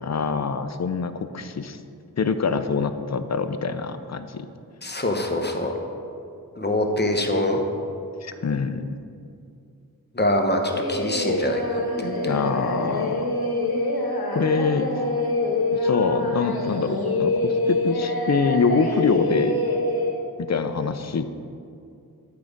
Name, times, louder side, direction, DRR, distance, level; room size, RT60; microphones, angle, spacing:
voice 1, 0.0-1.8 2.2-4.5 8.2-8.9 12.2-13.2 14.3-14.9 15.7-19.6 20.4-21.3, left 5 dB, 45° left, 10 dB, 0.5 m, -25 dB
voice 2, 4.8-5.7 6.6-7.6 10.1-12.3, left 1 dB, 25° left, 3 dB, 0.8 m, -24 dB
Singing, 10.7-20.1, left 2 dB, 80° left, 1.0 m, -25 dB
8.5 x 4.7 x 5.2 m, 2.5 s
wide cardioid pair, 45°, 37 cm